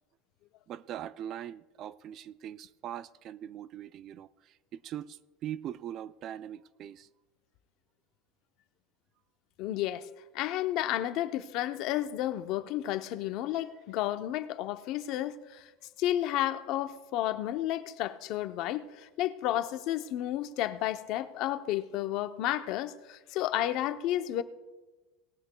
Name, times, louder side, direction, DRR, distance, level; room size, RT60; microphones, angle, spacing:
voice 1, 0.7-7.1, right 10 dB, 40° right, 0.3 m, -41 dB
voice 2, 9.6-10.1 10.3-15.7 16.0-24.4, left 13 dB, 50° left, 0.6 m, -32 dB
19.0 x 13.0 x 2.2 m
cardioid pair, 155°, 0 cm